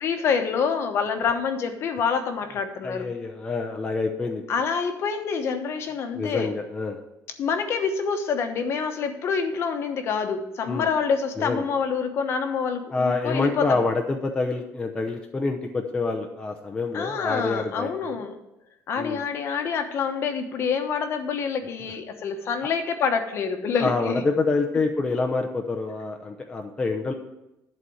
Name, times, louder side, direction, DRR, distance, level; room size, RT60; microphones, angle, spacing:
voice 1, 0.0-3.1 4.5-6.5 7.4-13.8 16.9-18.4 18.9-24.2, left 6 dB, 45° left, 6 dB, 1.0 m, -27 dB
voice 2, 2.8-4.4 6.1-7.0 10.7-10.9 11.4-11.6 12.9-18.1 19.0-19.2 23.8-27.1, left 3 dB, 15° left, 2 dB, 0.7 m, -27 dB
11.0 x 4.1 x 7.8 m, 0.92 s
cardioid pair, 170°, 6 cm